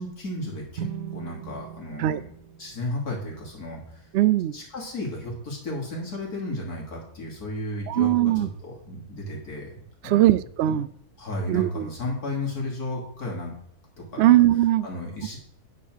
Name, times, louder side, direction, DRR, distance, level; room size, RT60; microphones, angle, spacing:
voice 1, 0.0-2.2 2.6-4.1 4.5-9.7 10.0-10.3 10.7-10.8 11.2-13.5 14.0-14.3 14.8-15.4, left 1 dB, 70° left, -2 dB, 3.4 m, -34 dB
sound 1, 0.8-4.3, right 9 dB, 70° right, 1.2 m, -40 dB
voice 2, 4.1-4.5 7.9-8.5 10.0-10.9 11.5-11.9 14.2-14.9, right 14 dB, 90° right, 15 dB, 0.5 m, -20 dB
10.0 x 5.4 x 6.5 m, 0.71 s
omnidirectional pair, 1.7 m